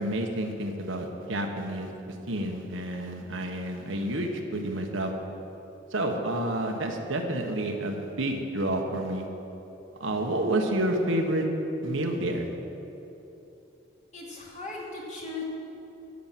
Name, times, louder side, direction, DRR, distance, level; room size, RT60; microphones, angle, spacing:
voice 1, 0.0-1.9 2.3-5.1 5.9-9.3 10.0-11.5 11.8-12.5, right 1 dB, 75° right, 3 dB, 1.4 m, -29 dB
voice 2, 14.1-15.4, left 3 dB, 40° left, -3 dB, 2.6 m, -38 dB
13.5 x 7.6 x 7.6 m, 3.0 s
head